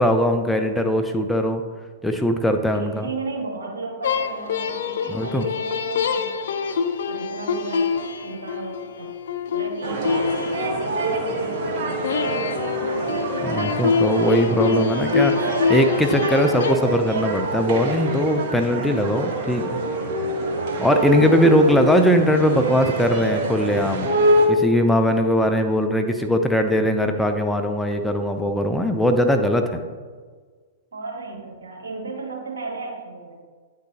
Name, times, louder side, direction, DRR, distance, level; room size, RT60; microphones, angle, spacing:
voice 1, 0.0-1.6 2.0-3.1 5.1-5.5 13.4-19.8 20.8-24.1 24.5-29.8, equal, 5° left, 5 dB, 0.4 m, -20 dB
voice 2, 2.8-9.1 9.5-13.2 30.9-33.4, right 3 dB, 75° right, -1 dB, 1.5 m, -35 dB
sound 1, 4.0-11.4 12.0-16.7, left 6 dB, 65° left, 0.4 m, -25 dB
sound 2, 9.8-24.5, right 1 dB, 50° right, 1.2 m, -25 dB
9.3 x 3.8 x 2.8 m, 1.5 s
figure-of-eight pair, 105°, 0 cm